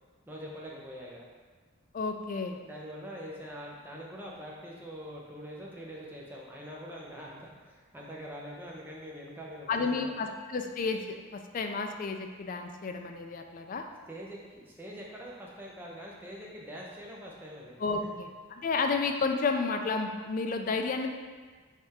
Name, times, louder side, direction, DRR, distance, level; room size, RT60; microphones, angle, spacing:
voice 1, 0.3-1.2 2.6-10.3 14.1-17.8, equal, 10° right, -4 dB, 0.6 m, -44 dB
voice 2, 1.9-2.6 9.7-13.8 17.8-18.3 18.6-21.1, left 4 dB, 40° left, 5 dB, 0.3 m, -31 dB
3.6 x 3.4 x 4.1 m, 1.5 s
head